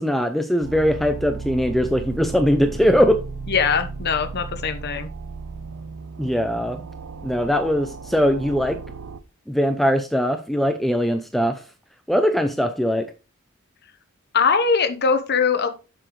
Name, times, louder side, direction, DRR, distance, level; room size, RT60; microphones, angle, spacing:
voice 1, 0.0-3.2 6.2-6.8 7.2-8.8 9.5-11.6 12.1-13.1, equal, ahead, 0.5 m, -21 dB
sound 1, 0.6-9.2, right 4 dB, 85° right, 0.6 m, -35 dB
voice 2, 3.5-5.1 14.3-15.7, left 5 dB, 50° left, 1.0 m, -21 dB
7.3 x 7.0 x 3.2 m
head